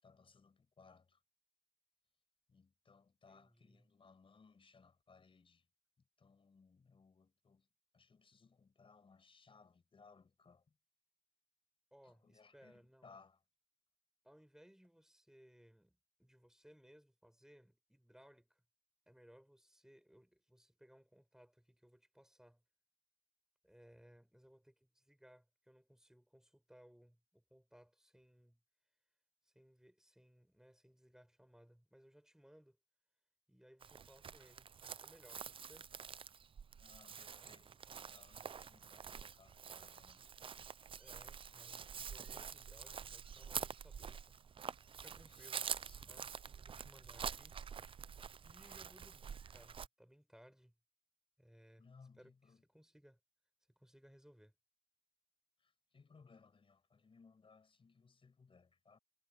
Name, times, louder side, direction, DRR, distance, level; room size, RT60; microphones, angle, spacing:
voice 1, 0.0-1.2 2.5-5.7 6.0-7.7 7.9-10.8 12.0-13.4 36.8-40.2 45.3-46.2 51.8-52.6 55.6-59.0, left 4 dB, 85° left, 5.6 m, -65 dB
voice 2, 3.3-3.9 11.9-13.1 14.2-18.6 19.1-22.6 23.6-28.6 29.4-32.8 33.5-35.9 40.9-44.4 45.0-45.7 46.1-47.6 48.4-50.7 51.4-51.8 52.2-52.3 52.7-53.2 53.8-54.5, equal, 5° right, 7.7 m, -64 dB
Chirp tweet, 33.8-49.9, right 7 dB, 85° right, 0.4 m, -47 dB
wide cardioid pair, 70°, 9 cm